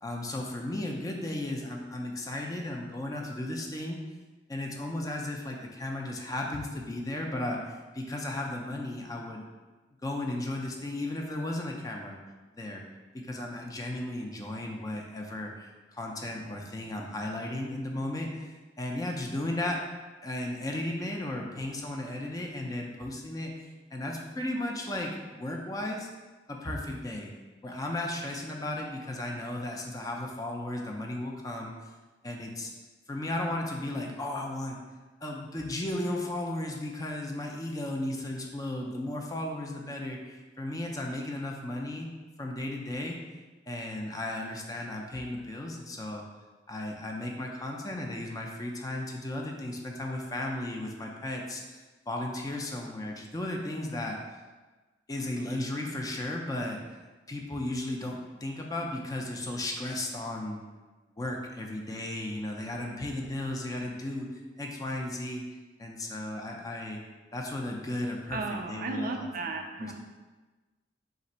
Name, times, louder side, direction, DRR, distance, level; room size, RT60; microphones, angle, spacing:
voice 1, 0.0-4.0 4.5-9.4 10.0-12.2 12.6-12.8 13.2-18.5 18.8-19.8 20.2-23.5 23.9-26.1 26.5-27.3 27.6-31.9 32.2-32.7 33.1-34.8 35.2-42.1 42.4-43.2 43.7-46.2 46.7-51.8 52.1-54.2 55.1-56.8 57.3-60.6 61.2-64.3 64.6-65.4 65.8-67.0 67.3-69.9, left 1 dB, 20° left, 1 dB, 0.4 m, -35 dB
voice 2, 68.3-69.9, right 3 dB, 50° right, 4 dB, 0.4 m, -34 dB
3.7 x 2.5 x 4.2 m, 1.2 s
head